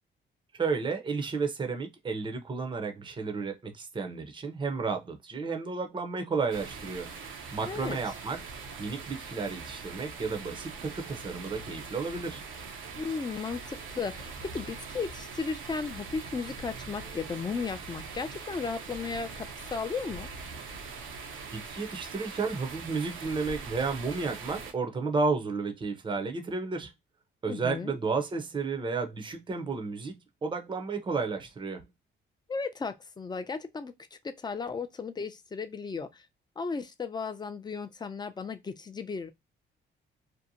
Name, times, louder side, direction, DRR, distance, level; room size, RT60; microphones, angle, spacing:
voice 1, 0.5-8.4 8.8-12.4 21.5-26.9 27.4-31.8, right 4 dB, 25° right, 0.6 m, -32 dB
sound 1, 6.5-24.7, right 4 dB, 80° right, 0.7 m, -42 dB
voice 2, 7.6-8.0 13.0-20.3 27.5-28.0 32.5-36.3 36.6-39.3, left 5 dB, 20° left, 0.4 m, -35 dB
2.6 x 2.1 x 2.6 m
cardioid pair, 90°, 20 cm